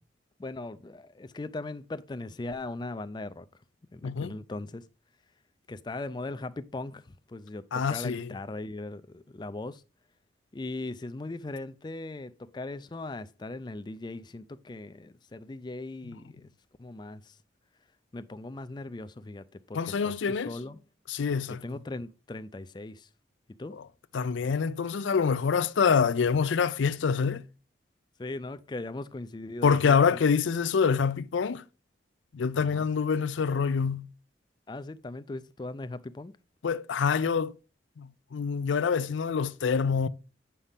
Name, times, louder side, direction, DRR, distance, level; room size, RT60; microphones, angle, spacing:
voice 1, 0.4-3.5 3.9-4.8 5.7-9.8 10.5-16.5 16.8-17.4 18.1-20.8 21.6-23.1 23.6-23.7 28.2-30.2 32.5-32.9 34.7-36.3, left 2 dB, 25° left, 0.4 m, -39 dB
voice 2, 4.0-4.3 7.7-8.3 19.7-20.5 21.1-21.6 23.7-23.8 24.1-27.4 29.6-31.6 32.3-34.1 36.6-37.5 38.0-40.1, left 6 dB, 85° left, 0.4 m, -26 dB
8.3 x 5.6 x 3.4 m
head